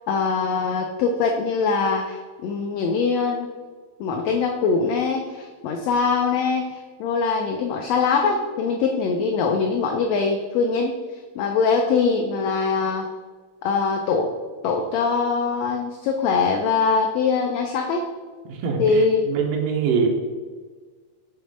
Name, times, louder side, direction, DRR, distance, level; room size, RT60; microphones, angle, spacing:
voice 1, 0.1-3.5 4.0-10.9 11.3-13.1 13.6-14.3 14.6-18.1 18.8-19.2, left 5 dB, 90° left, 3 dB, 1.4 m, -22 dB
voice 2, 18.5-20.1, right 6 dB, 70° right, 1 dB, 1.9 m, -24 dB
6.8 x 3.1 x 5.2 m, 1.5 s
omnidirectional pair, 3.4 m